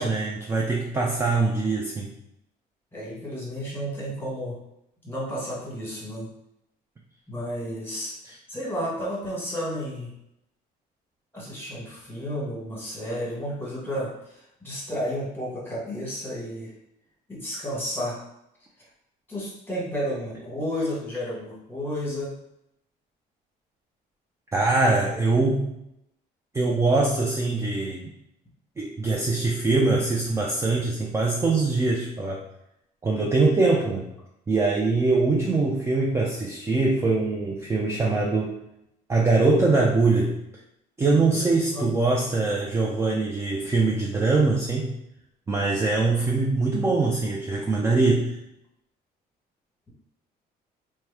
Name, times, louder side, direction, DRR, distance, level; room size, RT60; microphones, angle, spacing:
voice 1, 0.0-2.1 8.2-8.4 24.5-25.8 26.5-28.1 28.8-32.4 33.0-34.1 34.5-38.5 39.1-40.4 41.0-44.9 45.5-48.4, right 3 dB, 15° right, -2 dB, 0.4 m, -23 dB
voice 2, 2.9-4.6 5.0-6.3 7.3-8.1 8.5-10.1 11.3-16.7 17.3-18.2 19.3-22.3 41.1-41.9, equal, 10° left, -5 dB, 1.3 m, -32 dB
2.9 x 2.1 x 3.4 m, 0.82 s
cardioid pair, 110°, 17 cm